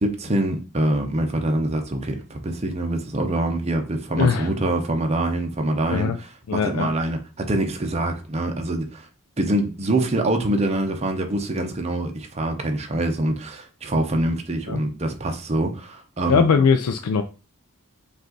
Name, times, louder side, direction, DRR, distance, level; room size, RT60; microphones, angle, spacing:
voice 1, 0.0-9.0 9.4-16.4, right 1 dB, 30° right, 0.7 m, -25 dB
voice 2, 4.2-4.5 5.9-6.2 6.5-6.9 14.7-14.8 16.3-17.2, left 5 dB, 90° left, 0.4 m, -20 dB
5.2 x 2.5 x 3.8 m
head